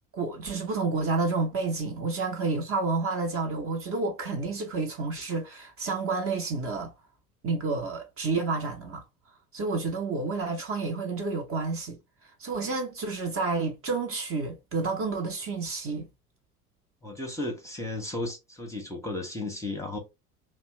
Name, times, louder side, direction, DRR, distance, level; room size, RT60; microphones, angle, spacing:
voice 1, 0.1-6.9 7.4-9.0 9.5-16.1, right 3 dB, 30° right, 0.8 m, -30 dB
voice 2, 17.0-20.0, left 2 dB, 5° left, 0.8 m, -34 dB
2.8 x 2.1 x 3.0 m
figure-of-eight pair, 70°, 44 cm